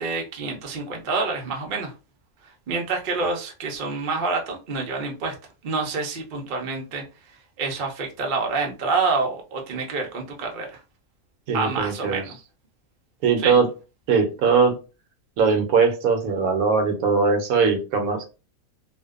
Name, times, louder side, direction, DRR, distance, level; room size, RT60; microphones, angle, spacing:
voice 1, 0.0-1.9 2.7-5.3 5.6-7.0 7.6-10.8 11.5-12.3 13.4-13.6, right 4 dB, 55° right, 0.5 m, -27 dB
voice 2, 11.5-12.2 13.2-13.7 14.1-14.8 15.4-18.3, right 5 dB, 80° right, 1.0 m, -20 dB
2.5 x 2.1 x 2.3 m
omnidirectional pair, 1.5 m